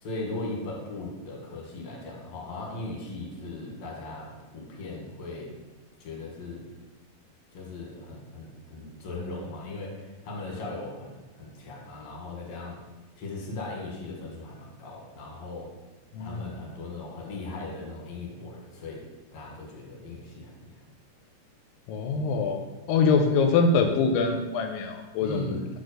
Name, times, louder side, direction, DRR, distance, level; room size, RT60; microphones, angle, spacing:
voice 1, 0.0-5.5 6.0-6.6 7.5-12.8 13.2-15.7 16.2-19.0 19.3-20.8 25.2-25.6, left 2 dB, 55° left, -1 dB, 2.6 m, -38 dB
voice 2, 21.9-22.6 22.9-25.7, left 4 dB, 85° left, 4 dB, 2.3 m, -24 dB
7.2 x 4.0 x 6.5 m, 1.2 s
omnidirectional pair, 3.9 m